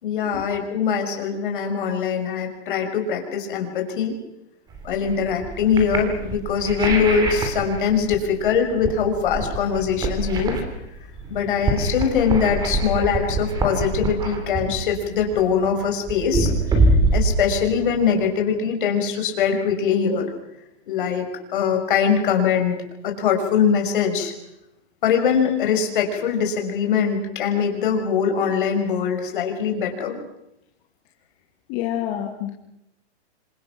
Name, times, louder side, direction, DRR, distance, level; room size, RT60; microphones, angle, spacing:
voice 1, 0.0-4.1 4.8-10.6 11.3-16.5 17.1-20.3 20.9-22.8 23.0-24.3 25.0-30.2, left 7 dB, 50° left, 4 dB, 5.9 m, -22 dB
sound 1, 4.7-18.1, right 2 dB, 10° right, 3.2 m, -25 dB
voice 2, 31.7-32.5, left 11 dB, 25° left, 0 dB, 2.3 m, -28 dB
28.0 x 26.0 x 6.0 m, 0.86 s
hypercardioid pair, 170°, 33 cm